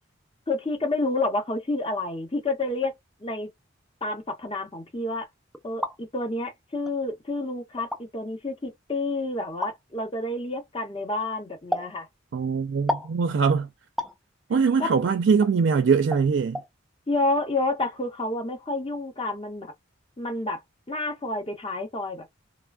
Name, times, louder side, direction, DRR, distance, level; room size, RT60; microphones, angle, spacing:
voice 1, 0.5-2.9 3.2-3.5 4.0-5.3 5.6-12.1 14.5-14.9 17.1-19.7 20.2-20.6 20.9-22.3, left 2 dB, 30° left, 0.9 m, -29 dB
sound 1, 5.5-6.0 6.9-7.0 7.8-8.0 9.6-9.8 11.7-11.9 12.9-13.1 14.0-14.2 15.4-15.5 16.1-16.3 16.5-16.7, left 1 dB, ahead, 0.3 m, -29 dB
voice 2, 12.3-13.7 14.5-16.6, right 5 dB, 70° right, 0.4 m, -22 dB
3.1 x 2.2 x 2.3 m
head